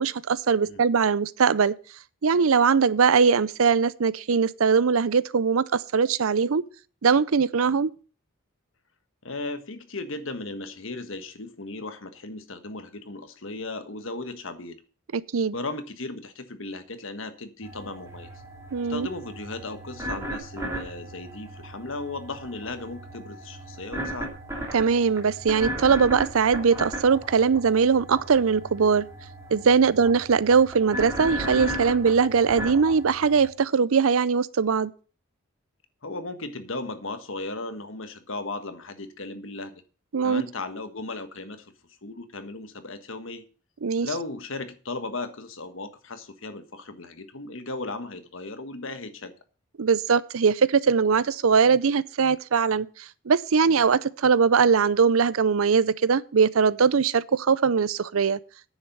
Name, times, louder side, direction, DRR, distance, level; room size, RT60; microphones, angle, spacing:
voice 1, 0.0-1.7 2.2-6.6 7.0-7.9 15.1-15.6 18.7-19.1 24.7-29.1 29.5-34.9 40.1-40.4 43.8-44.1 49.8-52.9 53.3-58.4, right 5 dB, 75° right, 0.5 m, -21 dB
voice 2, 9.2-14.8 15.5-18.3 18.9-24.3 29.8-30.0 36.0-39.8 40.2-41.7 42.0-43.4 44.0-49.3, left 2 dB, 65° left, 1.4 m, -36 dB
sound 1, 17.6-33.5, right 1 dB, 15° right, 3.1 m, -36 dB
9.8 x 7.3 x 6.7 m
head